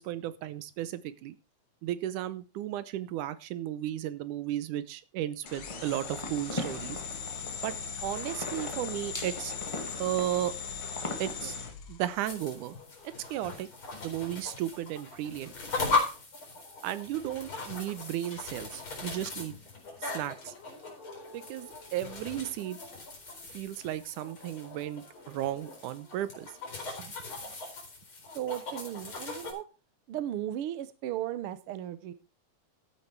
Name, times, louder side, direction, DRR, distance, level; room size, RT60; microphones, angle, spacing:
voice 1, 0.0-1.4 1.8-7.0 7.6-7.7 8.0-9.5 10.0-10.5 11.2-12.8 13.3-13.7 14.0-15.5 16.8-19.6 20.0-20.5 21.3-22.8 23.5-26.5 27.0-27.1, right 13 dB, 85° right, 15 dB, 2.4 m, -34 dB
sound 1, 5.4-11.7, left 2 dB, 25° left, 0.7 m, -40 dB
sound 2, 5.5-12.6, left 7 dB, 70° left, 2.9 m, -40 dB
sound 3, 12.1-29.5, left 3 dB, 40° left, 5.1 m, -38 dB
voice 2, 28.3-29.6 30.1-32.1, right 12 dB, 65° right, 13 dB, 1.5 m, -35 dB
12.5 x 8.8 x 4.5 m, 0.31 s
omnidirectional pair, 3.5 m